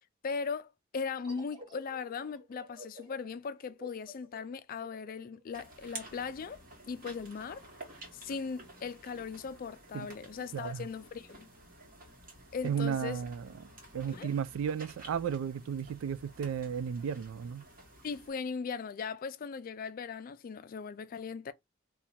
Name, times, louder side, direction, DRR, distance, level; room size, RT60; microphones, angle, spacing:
voice 1, 0.2-0.7 0.9-7.6 8.1-11.5 12.5-13.2 14.1-14.3 18.0-21.5, left 5 dB, 45° left, 0.3 m, -38 dB
sound 1, 1.2-6.5, left 1 dB, 25° right, 1.4 m, -52 dB
sound 2, 5.5-18.3, right 2 dB, 45° right, 1.4 m, -52 dB
voice 2, 10.5-10.9 12.6-13.4 13.9-17.6, right 7 dB, 80° right, 0.3 m, -34 dB
2.8 x 2.3 x 4.2 m
head